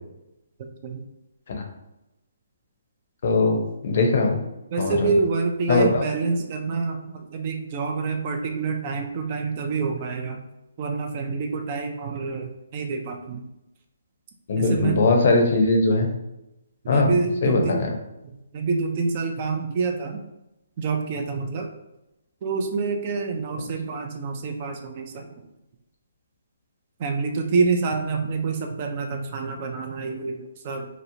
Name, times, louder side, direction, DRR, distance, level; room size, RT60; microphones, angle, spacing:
voice 1, 0.6-1.0 4.7-10.4 10.8-13.4 14.6-15.7 16.8-17.9 18.5-20.2 20.8-21.7 22.4-25.3 27.0-30.9, right 4 dB, 40° right, 4 dB, 0.4 m, -27 dB
voice 2, 3.2-4.4 4.8-5.1 5.7-5.9 14.5-16.1 16.9-17.1 17.4-17.6, left 3 dB, 55° left, 2 dB, 0.6 m, -20 dB
2.8 x 2.0 x 2.7 m, 0.91 s
hypercardioid pair, 150°, 0 cm